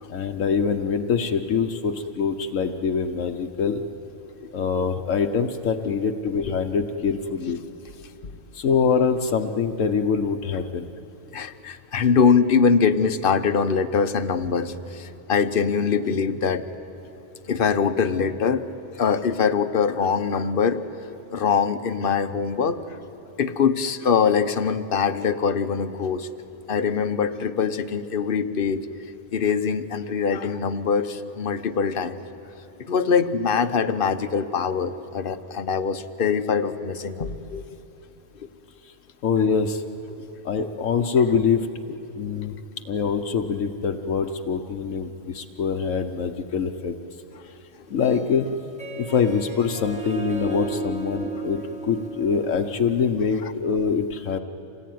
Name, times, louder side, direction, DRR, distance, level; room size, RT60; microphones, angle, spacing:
voice 1, 0.1-3.8 4.5-7.6 8.5-10.9 39.2-39.8 40.4-41.7 42.1-42.6 42.8-46.9 47.9-48.5 49.0-54.4, left 6 dB, 80° left, 4 dB, 1.3 m, -24 dB
voice 2, 11.3-16.7 17.5-18.7 19.0-20.8 21.3-23.0 23.4-26.3 26.7-28.8 29.3-32.2 32.8-37.6 38.4-38.5 40.1-40.3 47.3-47.4 53.4-53.5, left 6 dB, 50° left, 10 dB, 1.0 m, -23 dB
Harp, 47.9-53.4, right 2 dB, 5° right, 1.5 m, -34 dB
27.0 x 18.5 x 9.3 m, 3.0 s
omnidirectional pair, 1.3 m